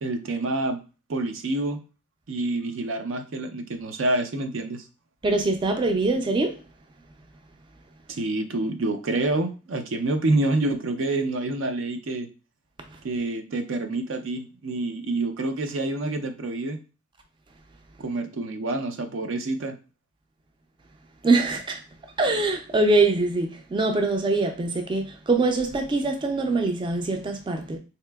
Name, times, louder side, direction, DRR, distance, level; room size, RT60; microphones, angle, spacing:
voice 1, 0.0-0.8 1.1-1.8 2.3-4.8 8.1-12.3 13.0-16.8 18.0-19.8, right 2 dB, 80° right, 0.5 m, -27 dB
voice 2, 5.2-6.6 21.2-21.8 22.2-27.8, right 3 dB, 25° right, 0.3 m, -23 dB
4.0 x 2.8 x 2.2 m
head